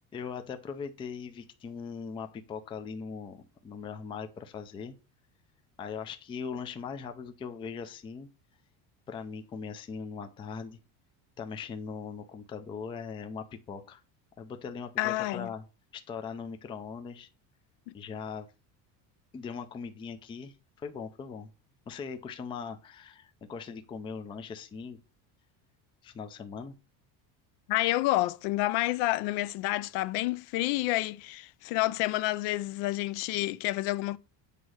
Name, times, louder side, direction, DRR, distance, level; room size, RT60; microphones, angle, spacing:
voice 1, 0.1-5.0 5.8-8.3 9.1-10.8 11.4-14.0 14.4-15.6 15.9-17.3 17.9-18.5 19.3-21.5 21.9-25.0 26.0-26.8, left 6 dB, 15° left, 0.4 m, -40 dB
voice 2, 15.0-15.5 27.7-34.2, left 17 dB, 65° left, 0.5 m, -29 dB
8.3 x 4.1 x 6.2 m
cardioid pair, 180°, 42 cm